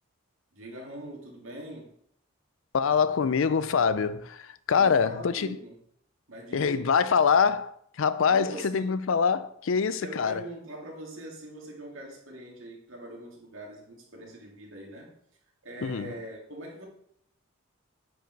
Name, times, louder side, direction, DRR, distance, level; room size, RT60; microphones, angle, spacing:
voice 1, 0.5-1.9 4.7-5.7 6.3-6.9 8.3-9.0 10.0-15.1 15.6-16.8, right 1 dB, 70° right, 2.4 m, -42 dB
voice 2, 2.7-5.6 6.5-10.4 15.8-16.1, left 6 dB, 70° left, 0.5 m, -25 dB
9.1 x 4.9 x 4.7 m
head